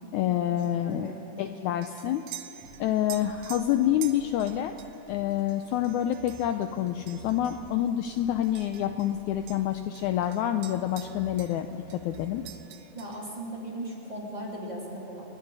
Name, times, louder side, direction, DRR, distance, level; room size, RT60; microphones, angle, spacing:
voice 1, 0.1-1.1 1.4-2.2 2.8-4.8 5.1-12.4, left 11 dB, 80° left, 7 dB, 1.7 m, -27 dB
sound 1, 0.6-9.2 9.5-11.6 11.9-13.4, right 12 dB, 85° right, 2.6 m, -47 dB
voice 2, 0.8-1.5 12.9-15.2, right 1 dB, 10° right, -5 dB, 3.2 m, -38 dB
sound 2, 2.6-12.5, right 1 dB, 40° right, 3.7 m, -51 dB
29.5 x 21.5 x 4.1 m, 3.0 s
omnidirectional pair, 4.1 m